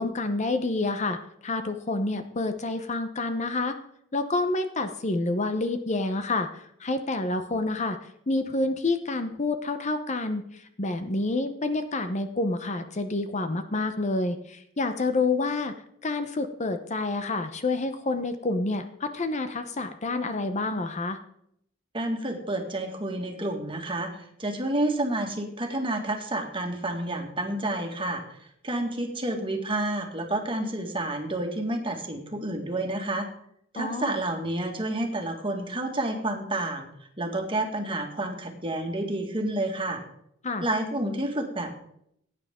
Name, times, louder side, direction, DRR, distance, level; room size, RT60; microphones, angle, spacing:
voice 1, 0.0-3.8 4.1-15.7 16.0-21.2 33.7-34.1 40.4-40.6, left 2 dB, 40° left, 9 dB, 0.9 m, -28 dB
voice 2, 21.9-33.3 33.7-36.9 37.2-40.0 40.6-41.7, right 1 dB, 25° right, 3 dB, 1.9 m, -30 dB
17.5 x 9.3 x 3.7 m, 0.71 s
head